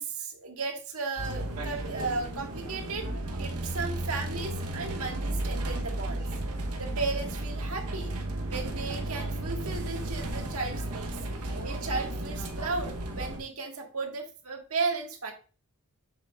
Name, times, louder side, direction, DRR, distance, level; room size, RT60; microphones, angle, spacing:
voice 1, 0.0-3.1 3.4-6.3 6.8-8.1 8.4-11.2 11.6-15.3, right 4 dB, 75° right, 2 dB, 1.7 m, -35 dB
sound 1, 1.2-13.4, right 1 dB, 90° right, 1.0 m, -34 dB
7.4 x 6.9 x 2.4 m, 0.36 s
head